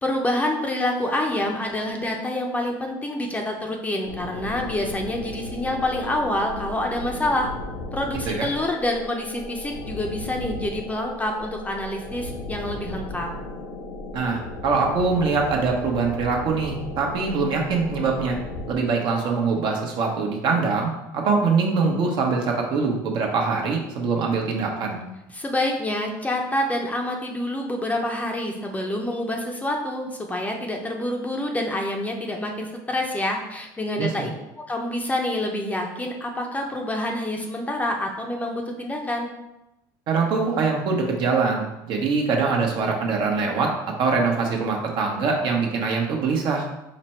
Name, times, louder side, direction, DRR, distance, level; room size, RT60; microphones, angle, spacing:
voice 1, 0.0-7.5 7.9-13.3 25.3-34.3 34.7-39.3, left 1 dB, 15° left, 2 dB, 0.7 m, -27 dB
sound 1, 4.0-18.7, left 2 dB, 65° left, 0.9 m, -36 dB
voice 2, 14.1-18.4 18.7-25.0 34.0-34.3 40.1-43.7 44.0-46.7, right 4 dB, 55° right, 1 dB, 0.9 m, -23 dB
5.0 x 2.2 x 4.3 m, 0.93 s
supercardioid pair, 95°, 10 cm